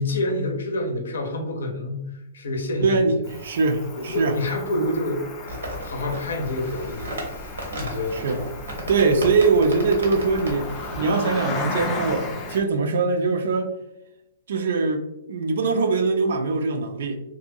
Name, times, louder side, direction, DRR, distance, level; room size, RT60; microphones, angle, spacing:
voice 1, 0.0-3.3 4.0-5.3 5.8-7.2 7.8-8.2, left 1 dB, 80° left, 3 dB, 0.6 m, -27 dB
voice 2, 2.8-4.3 8.1-8.5 8.8-10.7 11.0-13.7 14.5-17.2, right 4 dB, 70° right, 6 dB, 0.4 m, -22 dB
Cricket, 3.3-12.6, left 3 dB, 30° left, 0.4 m, -35 dB
sound 1, 5.5-11.0, right 1 dB, 85° right, 0.9 m, -35 dB
2.7 x 2.2 x 2.6 m, 0.89 s
hypercardioid pair, 130°, 0 cm